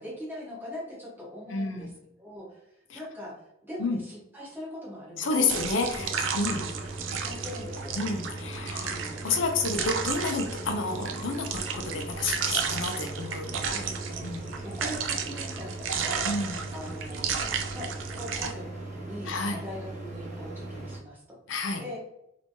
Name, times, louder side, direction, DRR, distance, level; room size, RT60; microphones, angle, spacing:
voice 1, 0.0-1.9 2.2-3.3 3.6-5.5 5.9-6.2 6.5-6.7 7.2-7.9 8.8-9.1 13.7-16.3 16.7-17.4 17.7-21.4 21.7-22.0, equal, 10° right, -6 dB, 1.4 m, -41 dB
voice 2, 1.5-1.9 3.8-4.0 5.2-6.6 8.0-8.9 9.2-13.5 14.2-14.5 16.2-16.6 19.3-19.6 21.5-21.8, left 3 dB, 70° left, 3 dB, 0.5 m, -30 dB
sound 1, 5.5-18.5, right 6 dB, 70° right, 0.5 m, -33 dB
sound 2, 6.0-21.0, right 2 dB, 40° right, 0.8 m, -39 dB
3.3 x 3.0 x 2.7 m, 0.82 s
head